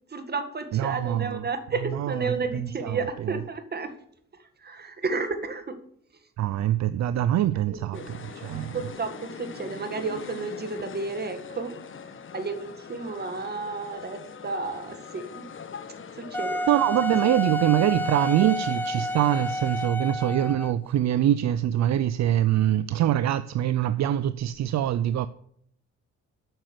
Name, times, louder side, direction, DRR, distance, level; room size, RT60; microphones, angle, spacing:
voice 1, 0.1-3.9 4.6-5.8 7.7-8.0 8.5-11.8 12.3-15.4 16.1-16.6, right 4 dB, 35° right, 1.8 m, -32 dB
voice 2, 0.7-1.5 1.9-3.4 6.4-8.8 16.7-25.3, right 12 dB, 65° right, 0.6 m, -24 dB
sound 1, 7.9-19.9, left 6 dB, 40° left, 1.2 m, -43 dB
Wind instrument woodwind instrument, 16.3-20.9, left 1 dB, 5° left, 0.6 m, -30 dB
9.1 x 6.4 x 7.8 m
cardioid pair, 90°, 30 cm